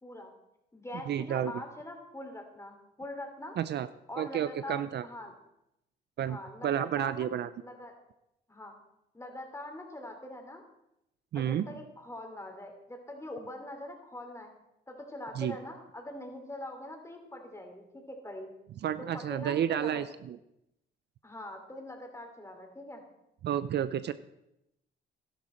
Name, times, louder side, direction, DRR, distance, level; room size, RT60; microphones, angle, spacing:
voice 1, 0.0-0.3 0.7-3.6 4.1-5.3 6.2-7.3 7.6-7.9 8.5-8.7 9.1-10.6 11.3-14.5 14.9-18.5 19.1-20.0 21.2-23.0, left 1 dB, 15° left, 3 dB, 2.8 m, -43 dB
voice 2, 1.1-1.5 3.6-3.9 4.2-5.1 6.2-6.4 6.6-7.5 11.3-11.7 15.4-15.6 18.8-20.4 23.4-24.1, right 10 dB, 60° right, 14 dB, 0.5 m, -31 dB
12.0 x 11.5 x 4.4 m, 0.85 s
cardioid pair, 90°, 20 cm